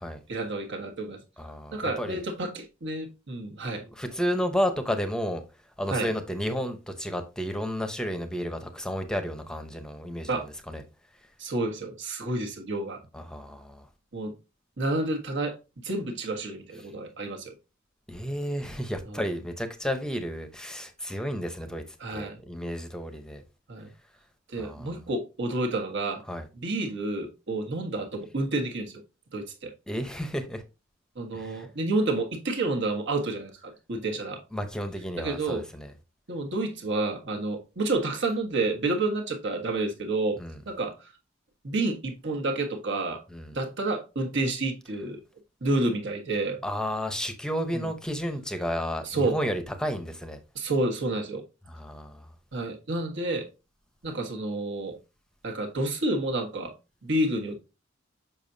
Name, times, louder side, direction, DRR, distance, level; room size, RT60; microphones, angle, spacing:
voice 1, 0.3-1.2 1.7-3.8 5.9-6.1 10.3-10.5 11.4-13.0 14.1-14.3 14.8-15.5 15.8-17.5 19.1-19.2 22.0-22.4 23.7-23.9 24.5-26.2 26.5-29.0 29.3-29.7 31.1-34.4 35.2-35.6 36.3-40.4 40.7-40.9 41.6-43.2 43.5-45.2 45.6-46.6 47.7-47.9 49.0-49.4 50.5-51.4 52.5-53.5 54.0-55.0 55.4-56.7 57.0-57.6, right 2 dB, 60° right, 1.4 m, -29 dB
voice 2, 1.4-2.2 3.9-5.4 5.8-10.8 13.1-13.9 18.1-21.8 22.1-23.4 24.6-24.9 26.3-26.5 29.9-30.6 31.3-31.7 34.5-35.9 40.4-40.6 43.3-43.6 46.6-50.4 51.7-52.3, equal, 5° left, 0.8 m, -32 dB
7.0 x 5.7 x 2.7 m
head